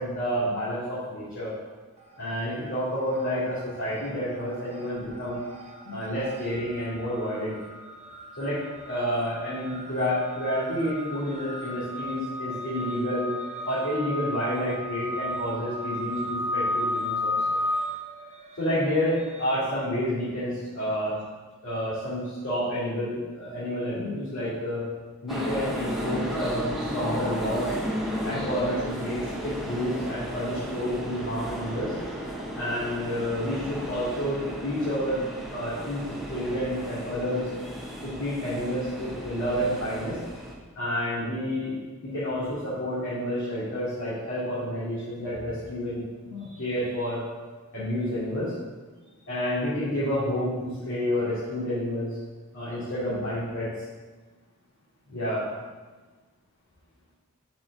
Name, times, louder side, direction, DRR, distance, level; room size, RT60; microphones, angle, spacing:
voice 1, 0.0-1.5 2.2-5.4 5.8-7.6 8.4-13.3 13.7-17.6 18.6-21.1 21.6-24.9 25.2-27.7 28.2-31.9 32.6-35.2 35.5-36.0 36.3-37.5 38.0-40.2 40.7-41.8 42.0-47.2 47.7-48.5 49.3-52.2 52.5-53.7 55.1-55.4, equal, 65° left, -12 dB, 2.5 m, -29 dB
sound 1, 2.0-2.7 2.9-19.6, left 1 dB, 30° right, 0.9 m, -34 dB
sound 2, 25.3-40.6, equal, ahead, 0.9 m, -34 dB
5.7 x 4.9 x 6.0 m, 1.3 s
head